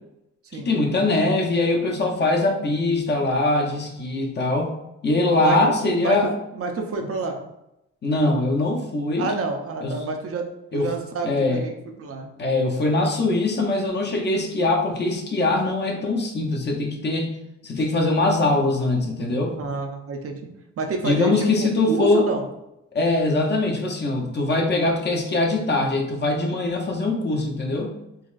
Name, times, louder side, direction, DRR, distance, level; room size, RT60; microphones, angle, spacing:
voice 1, 0.5-4.7 5.0-6.3 7.0-7.1 8.0-9.3 9.8-10.0 10.7-10.9 11.2-11.6 12.4-17.3 17.6-19.6 21.0-22.3 22.9-27.9, left 2 dB, 35° left, 1 dB, 0.7 m, -22 dB
voice 2, 5.4-7.4 9.2-10.5 10.7-11.7 12.0-12.3 19.6-20.4 20.8-22.4, right 4 dB, 50° right, 3 dB, 0.6 m, -28 dB
3.9 x 2.4 x 2.4 m, 0.87 s
cardioid pair, 90°, 30 cm